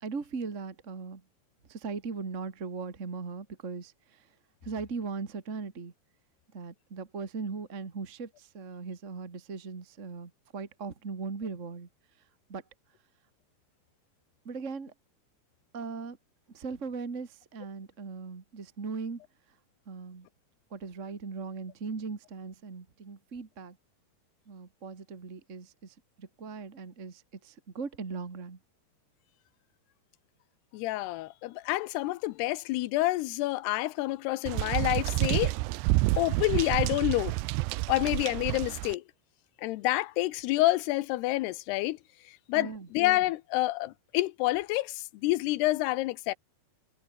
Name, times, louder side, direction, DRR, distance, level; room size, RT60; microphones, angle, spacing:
voice 1, 0.0-1.2 1.7-4.3 4.6-5.9 6.5-11.9 12.5-12.6 14.4-14.9 15.7-16.2 16.5-19.2 19.8-20.3 20.7-23.8 24.5-28.6 42.5-42.9, right 4 dB, 40° right, 1.1 m, -39 dB
voice 2, 30.7-35.5 36.2-37.3 37.9-39.0 39.6-42.0 42.5-46.3, left 18 dB, 85° left, 2.8 m, -28 dB
sound 1, 34.5-39.0, right 22 dB, 85° right, 2.8 m, -29 dB
omnidirectional pair, 4.8 m